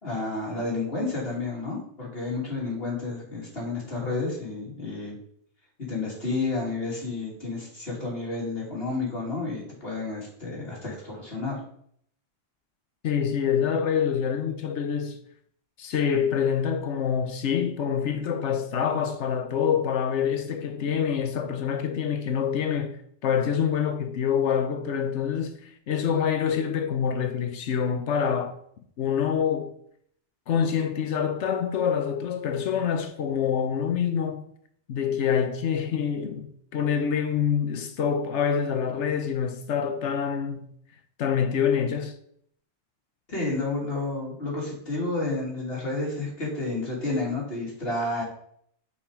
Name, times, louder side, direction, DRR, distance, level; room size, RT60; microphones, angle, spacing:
voice 1, 0.0-5.2 5.8-11.6 43.3-48.2, left 3 dB, 55° left, 3.0 m, -31 dB
voice 2, 13.0-15.2 15.8-28.6 29.0-29.7 30.5-34.4 34.9-40.7 41.2-42.1, left 7 dB, 85° left, 1.1 m, -26 dB
7.0 x 5.1 x 4.8 m
omnidirectional pair, 1.2 m